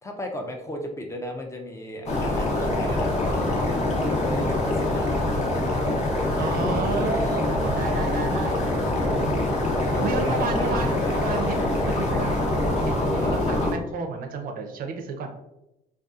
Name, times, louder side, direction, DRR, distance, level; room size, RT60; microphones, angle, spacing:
voice 1, 0.0-5.2 9.9-11.5 13.1-13.4, left 1 dB, 15° left, 2 dB, 0.4 m, -35 dB
sound 1, 2.1-13.7, left 1 dB, 40° left, 0.7 m, -24 dB
voice 2, 6.4-8.6 9.2-9.6 10.0-12.3 12.9-15.3, right 4 dB, 60° right, 4 dB, 0.5 m, -32 dB
2.6 x 2.3 x 2.3 m, 0.89 s
cardioid pair, 110°, 17 cm